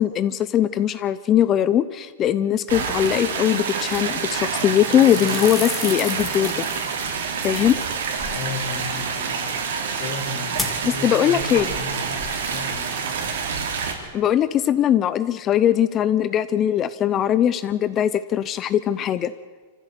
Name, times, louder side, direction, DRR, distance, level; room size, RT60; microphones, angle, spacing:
voice 1, 0.0-6.7 7.4-7.8 11.0-11.7 14.1-19.3, left 10 dB, 20° left, 15 dB, 0.6 m, -20 dB
sound 1, 2.7-13.9, right 6 dB, 75° right, 3.6 m, -27 dB
sound 2, 3.9-4.4 4.7-11.0 11.3-13.6 13.8-14.1, left 2 dB, 5° left, 2.4 m, -36 dB
voice 2, 8.3-9.5 9.8-13.0, left 3 dB, 50° left, 5 dB, 4.0 m, -35 dB
25.5 x 15.0 x 8.3 m, 1.5 s
supercardioid pair, 165°, 0 cm